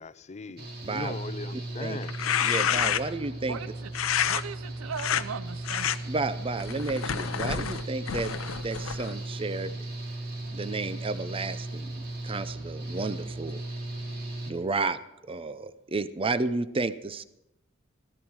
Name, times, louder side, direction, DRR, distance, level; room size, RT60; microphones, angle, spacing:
voice 1, 0.0-2.1, left 4 dB, 35° left, 0.5 m, -39 dB
Engine / Mechanical fan, 0.6-14.5, right 2 dB, 50° right, 2.5 m, -37 dB
voice 2, 0.8-1.1 1.8-2.0 2.4-3.6 6.1-9.7 10.5-13.6 14.5-15.0 15.3-17.2, right 3 dB, 25° right, 0.6 m, -32 dB
sound 1, 2.0-3.3 3.9-4.4 4.9-5.2 5.7-6.0 6.6-9.2, left 9 dB, 85° left, 0.6 m, -28 dB
voice 3, 3.5-3.9 4.2-6.0, right 6 dB, 85° right, 0.5 m, -38 dB
15.0 x 14.0 x 4.7 m
head